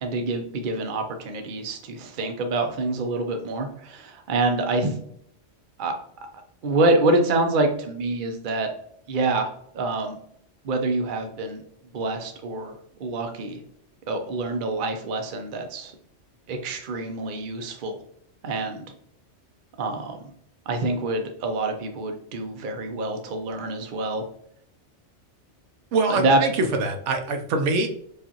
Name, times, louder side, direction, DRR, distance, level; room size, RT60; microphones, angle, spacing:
voice 1, 0.0-5.0 5.8-5.9 6.6-8.7 9.1-10.2 10.6-11.6 11.9-12.7 13.0-13.6 14.1-15.9 16.5-18.0 18.4-18.9 19.8-20.3 20.7-24.2 26.1-26.4, right 2 dB, 50° right, 5 dB, 0.7 m, -26 dB
voice 2, 25.9-27.9, right 3 dB, 80° right, 5 dB, 0.9 m, -24 dB
4.8 x 2.5 x 2.8 m, 0.68 s
omnidirectional pair, 1.2 m